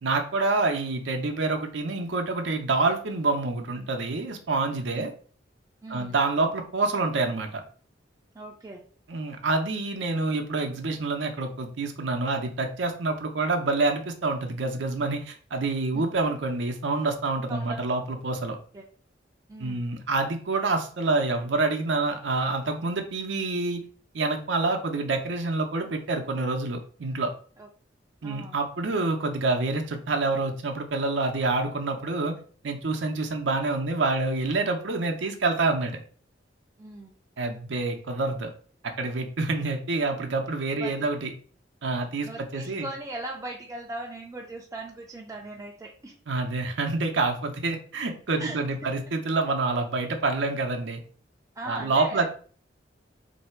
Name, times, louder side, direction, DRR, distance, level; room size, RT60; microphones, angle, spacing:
voice 1, 0.0-5.1 5.9-7.6 9.1-18.6 19.6-23.8 24.1-27.3 28.2-32.4 32.6-36.0 37.4-38.5 39.0-41.3 41.8-42.9 46.3-51.0 51.7-52.2, right 3 dB, 80° right, 3 dB, 0.6 m, -27 dB
voice 2, 5.8-6.1 8.3-8.8 15.9-16.0 17.5-17.8 18.7-18.8 19.5-19.9 27.6-27.7 28.2-28.6 36.8-37.1 40.8-41.1 42.2-46.2 48.4-48.6 51.6-52.2, right 2 dB, 20° right, -2 dB, 0.4 m, -38 dB
3.2 x 2.7 x 4.3 m, 0.43 s
head